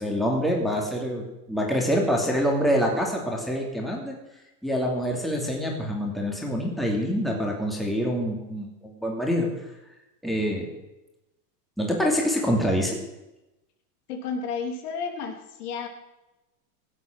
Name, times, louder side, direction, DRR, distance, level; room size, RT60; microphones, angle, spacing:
voice 1, 0.0-4.2 4.6-9.5 10.2-10.7 11.8-13.0, equal, ahead, -1 dB, 2.6 m, -26 dB
voice 2, 14.1-15.9, left 5 dB, 70° left, 3 dB, 3.1 m, -32 dB
17.5 x 8.1 x 6.2 m, 0.96 s
supercardioid pair, 135°, 47 cm